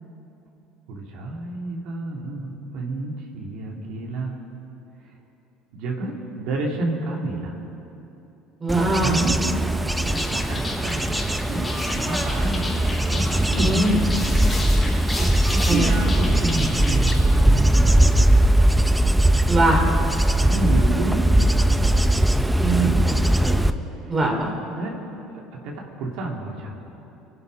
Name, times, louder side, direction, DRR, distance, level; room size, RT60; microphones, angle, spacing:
voice 1, 0.9-4.4 5.7-7.5 8.9-9.3 10.0-11.2 11.5-14.0 15.2-17.8 20.3-22.0 24.7-25.0 25.6-26.8, right 2 dB, 70° right, -1 dB, 2.5 m, -29 dB
voice 2, 8.6-9.1 13.6-14.0 15.7-15.9 19.5-19.8 22.6-23.5 24.1-24.5, right 2 dB, 25° right, 1 dB, 2.9 m, -22 dB
Bird / Insect / Wind, 8.7-23.7, right 1 dB, 5° right, 0.6 m, -20 dB
sound 1, 10.0-17.1, left 2 dB, 15° left, 3.7 m, -34 dB
23.0 x 11.0 x 5.2 m, 2.9 s
supercardioid pair, 115°, 0 cm